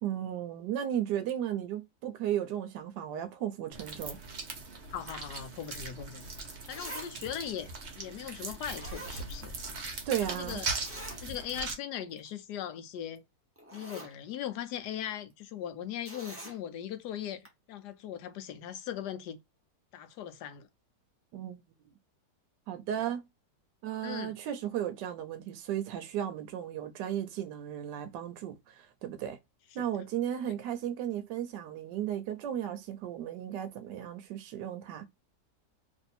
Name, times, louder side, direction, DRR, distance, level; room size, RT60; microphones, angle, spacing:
voice 1, 0.0-4.2 10.1-10.6 21.3-21.6 22.7-23.3 23.8-29.4 29.7-35.1, right 10 dB, 75° right, 1.2 m, -35 dB
sound 1, 3.7-11.7, right 3 dB, 50° right, 0.9 m, -40 dB
voice 2, 4.9-9.6 10.2-10.7 11.2-13.2 13.7-19.4 19.9-20.7 22.9-23.0 24.0-24.3 29.8-29.9 30.5-30.6, left 10 dB, 70° left, 1.1 m, -39 dB
Zipper (clothing), 6.7-7.1 7.4-7.5 8.4-8.5 8.8-9.7 10.0-10.1 10.8-11.2 11.6-11.7 12.1-12.3 13.2-13.3 13.6-14.1 16.0-16.6 17.4-17.5, right 1 dB, 20° right, 0.3 m, -44 dB
3.1 x 2.6 x 4.1 m
omnidirectional pair, 1.9 m